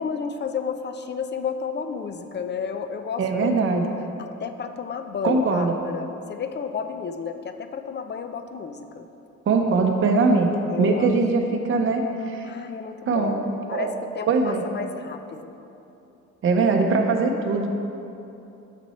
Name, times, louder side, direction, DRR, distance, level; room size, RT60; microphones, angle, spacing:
voice 1, 0.0-3.9 4.2-9.1 10.7-11.1 12.4-15.6, left 6 dB, 35° left, 8 dB, 0.5 m, -32 dB
voice 2, 3.2-3.9 5.2-5.7 9.5-10.5 10.8-12.5 13.1-13.9 14.3-14.6 16.4-17.7, right 4 dB, 45° right, 3 dB, 0.7 m, -21 dB
6.8 x 6.1 x 4.2 m, 2.9 s
cardioid pair, 90°, 30 cm